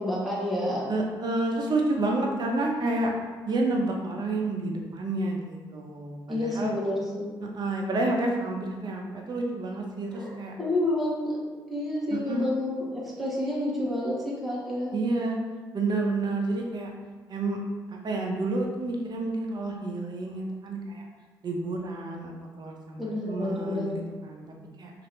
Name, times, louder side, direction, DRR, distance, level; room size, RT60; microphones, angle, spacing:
voice 1, 0.0-0.9 6.3-7.4 10.1-11.4 11.7-14.9 23.0-24.0, left 1 dB, ahead, -6 dB, 1.0 m, -29 dB
voice 2, 0.9-3.1 3.5-6.7 7.5-10.5 12.1-12.5 14.9-15.4 15.7-16.9 17.3-17.6 17.9-21.0 21.4-24.9, right 2 dB, 45° right, 0 dB, 0.6 m, -29 dB
2.7 x 2.5 x 3.1 m, 1.3 s
supercardioid pair, 55°, 10 cm